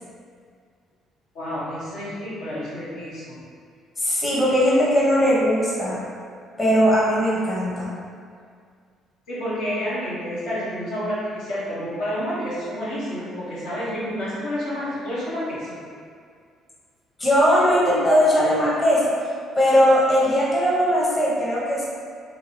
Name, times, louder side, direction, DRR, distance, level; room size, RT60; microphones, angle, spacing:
voice 1, 1.3-3.4 9.3-15.8, equal, 80° left, -10 dB, 1.1 m, -29 dB
voice 2, 4.0-6.0 6.6-7.9 17.2-19.2 19.6-21.9, equal, 25° left, -7 dB, 0.9 m, -19 dB
2.8 x 2.7 x 2.8 m, 2.2 s
hypercardioid pair, 55°, 0 cm